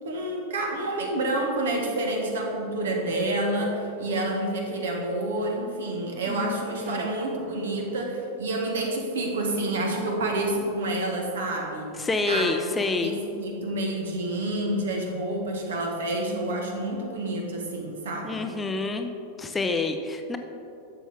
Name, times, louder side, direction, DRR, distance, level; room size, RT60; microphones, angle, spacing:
voice 1, 0.0-11.9 12.3-12.7 13.0-18.5, right 1 dB, 60° right, 1 dB, 1.5 m, -28 dB
voice 2, 6.3-7.1 12.0-13.1 18.2-19.1 19.4-20.4, left 3 dB, 15° left, 5 dB, 0.6 m, -28 dB
11.5 x 7.1 x 3.6 m, 2.8 s
figure-of-eight pair, 90°, 0 cm